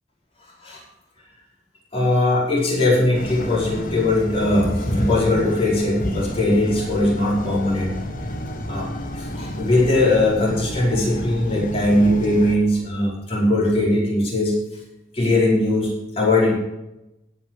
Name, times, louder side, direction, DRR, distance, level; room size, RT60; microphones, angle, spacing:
voice 1, 1.9-8.0 8.7-8.9 9.1-14.5 15.1-16.6, left 1 dB, 35° left, -5 dB, 5.1 m, -20 dB
sound 1, 3.1-12.6, equal, 50° left, 1.5 m, -31 dB
17.0 x 6.2 x 7.4 m, 0.90 s
head